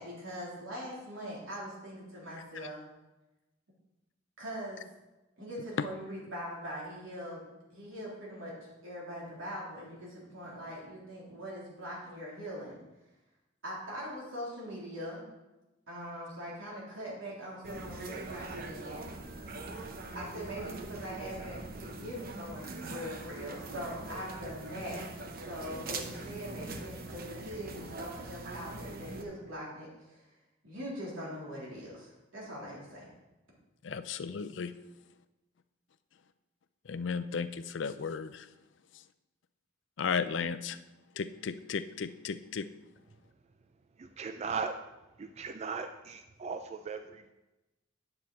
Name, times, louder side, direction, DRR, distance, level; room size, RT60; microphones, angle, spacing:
voice 1, 0.0-2.8 4.4-4.8 5.4-7.4 7.7-8.6 8.8-12.8 13.6-15.2 15.9-19.2 20.1-25.0 25.4-30.2 30.6-33.1, equal, 90° right, -5 dB, 3.5 m, -42 dB
sound 1, 17.6-29.2, right 3 dB, 50° right, 0.8 m, -42 dB
voice 2, 33.8-34.7 36.9-38.5 40.0-40.8 41.2-42.7, left 5 dB, 65° left, 12 dB, 0.5 m, -34 dB
voice 3, 44.2-44.7 45.2-47.3, right 5 dB, 35° right, 8 dB, 0.4 m, -37 dB
9.7 x 6.9 x 4.2 m, 1.0 s
head